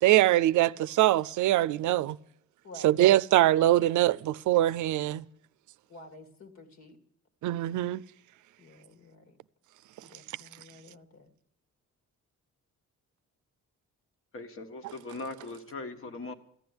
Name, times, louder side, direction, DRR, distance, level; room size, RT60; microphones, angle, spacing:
voice 1, 0.0-2.2 2.8-5.2 7.4-8.0, right 14 dB, 85° right, 0.5 m, -23 dB
voice 2, 5.9-7.0 8.6-9.4 10.0-11.3, left 1 dB, 65° left, 2.3 m, -51 dB
voice 3, 14.3-16.3, left 3 dB, 45° left, 1.5 m, -40 dB
15.0 x 10.0 x 9.6 m
cardioid pair, 155°, 29 cm